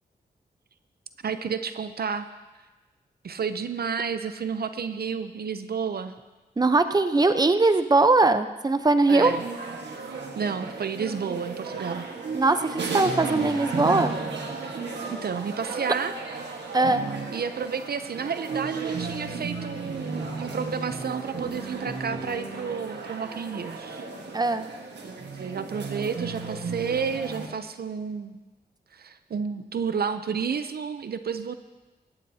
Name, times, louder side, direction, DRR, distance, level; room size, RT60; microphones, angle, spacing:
voice 1, 1.2-2.3 3.2-6.1 9.1-9.4 10.4-12.1 15.1-16.2 17.3-24.1 25.0-28.4 28.9-31.6, right 6 dB, 65° right, 10 dB, 0.6 m, -31 dB
voice 2, 6.6-9.3 12.3-14.1 16.7-17.0 24.3-24.6, right 3 dB, 25° right, 9 dB, 0.7 m, -21 dB
sound 1, 9.2-27.5, right 4 dB, 85° right, 1.6 m, -34 dB
17.0 x 14.0 x 2.8 m, 1.2 s
cardioid pair, 55°, 17 cm